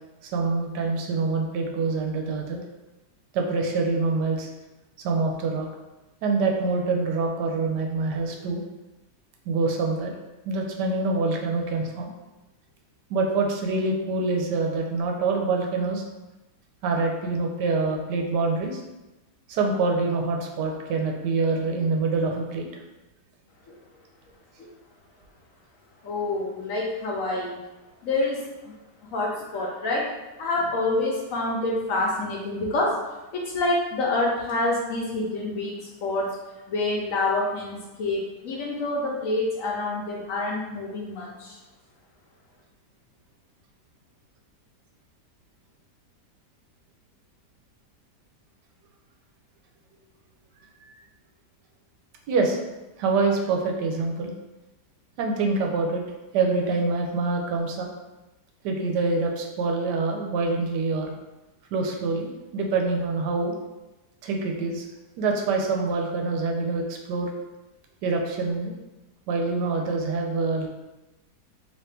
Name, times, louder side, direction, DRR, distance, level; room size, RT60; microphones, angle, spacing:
voice 1, 0.2-2.6 3.3-4.5 5.0-5.7 6.2-8.6 9.5-10.1 10.4-12.1 13.1-16.0 16.8-18.8 19.5-22.7 50.8-50.9 52.3-52.6 53.0-54.3 55.2-56.0 56.3-57.9 58.6-61.1 61.7-63.6 64.2-64.8 65.2-67.3 68.0-68.7 69.3-70.7, right 3 dB, 85° right, 2 dB, 1.2 m, -25 dB
voice 2, 26.0-27.6 28.0-28.4 29.0-33.0 33.3-36.3 36.7-41.6, left 2 dB, 65° left, -3 dB, 0.9 m, -27 dB
3.0 x 2.8 x 3.3 m, 1.1 s
omnidirectional pair, 1.8 m